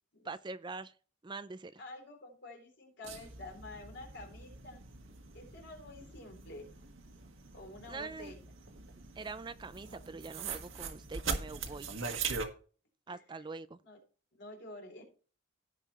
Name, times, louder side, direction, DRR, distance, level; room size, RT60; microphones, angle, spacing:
voice 1, 0.2-0.9 1.2-1.8 7.9-8.3 9.2-11.9 13.1-13.8, right 3 dB, 25° right, 0.4 m, -43 dB
voice 2, 1.8-4.8 5.3-6.7 7.5-8.4 11.9-12.1 13.1-13.2 13.8-14.0 14.3-15.0, left 2 dB, 60° left, 4.0 m, -49 dB
sound 1, 3.0-12.5, right 5 dB, 85° right, 1.6 m, -42 dB
16.5 x 5.5 x 3.1 m
head